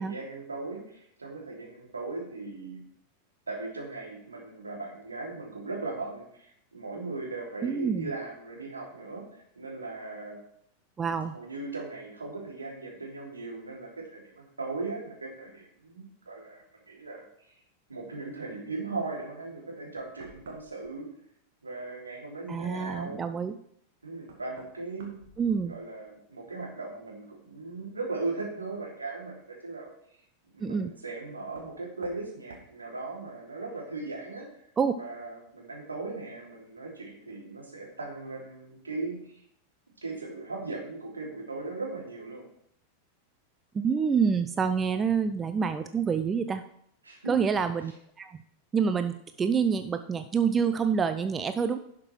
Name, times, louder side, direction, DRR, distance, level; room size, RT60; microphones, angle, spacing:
voice 1, 0.0-2.8 3.5-10.4 11.3-17.3 17.9-21.1 21.6-23.2 24.0-25.2 25.6-29.9 30.5-34.5 35.0-39.4 40.0-42.4 47.0-47.6, right 3 dB, 75° right, -2 dB, 3.2 m, -38 dB
voice 2, 7.6-8.1 11.0-11.3 22.5-23.5 25.4-25.7 30.6-30.9 34.8-34.9 43.7-46.6 47.3-47.9 48.2-48.4 48.7-51.8, right 6 dB, 20° right, 10 dB, 0.5 m, -27 dB
Knock, 20.0-20.9 23.4-23.5 24.2-26.1 26.4-27.0 28.7-28.8 31.5-31.8 32.0-32.3 32.5-32.7, right 3 dB, 60° right, 2.0 m, -52 dB
11.0 x 6.0 x 4.6 m, 0.69 s
figure-of-eight pair, 90°, 0 cm